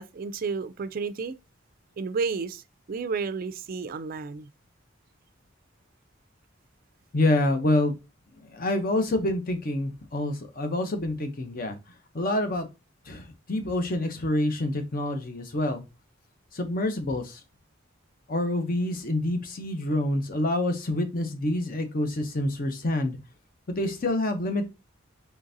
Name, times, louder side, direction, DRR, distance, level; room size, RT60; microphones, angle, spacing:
voice 1, 0.0-1.4 2.0-2.6 2.9-4.5, right 5 dB, 45° right, 0.4 m, -31 dB
voice 2, 7.1-7.9 8.4-11.8 12.1-12.7 13.1-15.8 16.5-17.4 18.3-23.2 23.7-24.7, left 1 dB, 45° left, 0.8 m, -27 dB
3.8 x 3.4 x 2.6 m
head